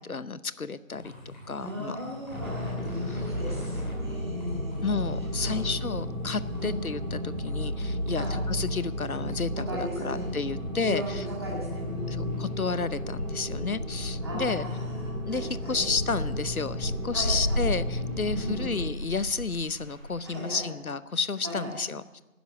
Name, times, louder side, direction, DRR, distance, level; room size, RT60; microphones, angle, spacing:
voice 1, 0.1-2.0 3.1-3.2 4.8-11.3 12.1-14.7 15.3-22.2, left 4 dB, 90° left, 16 dB, 0.8 m, -31 dB
sound 1, 0.9-20.6, equal, 30° left, 3.2 m, -38 dB
voice 2, 1.6-5.0 5.4-5.7 6.6-6.8 8.1-8.4 9.7-10.3 10.8-12.4 14.2-15.8 17.1-17.6 18.3-18.8 20.2-20.7 21.4-21.7, equal, 20° right, -5 dB, 2.1 m, -37 dB
sound 2, 2.3-18.8, left 1 dB, 5° right, 6.0 m, -34 dB
12.5 x 10.5 x 8.2 m, 1.1 s
figure-of-eight pair, 165°, 41 cm